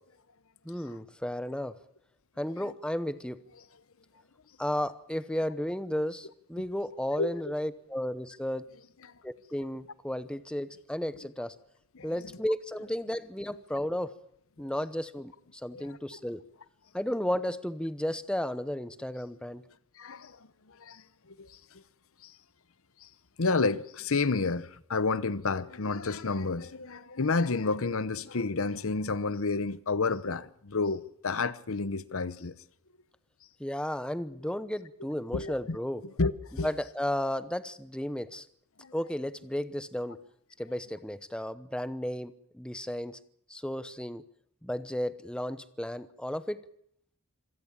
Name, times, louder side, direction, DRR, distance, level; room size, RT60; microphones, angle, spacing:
voice 1, 0.6-1.8 2.4-3.4 4.6-8.7 9.2-11.5 12.0-14.1 14.6-15.3 15.6-16.4 16.9-19.6 33.6-36.0 36.5-38.5 38.9-40.2 40.6-43.2 43.5-44.2 44.6-46.6, left 1 dB, 5° left, 0.8 m, -33 dB
voice 2, 20.0-20.4 20.8-21.0 21.4-21.5 23.4-32.5 35.3-35.5 36.2-36.3 36.6-36.7 38.8-38.9, left 3 dB, 65° left, 0.9 m, -30 dB
26.0 x 17.0 x 7.3 m
head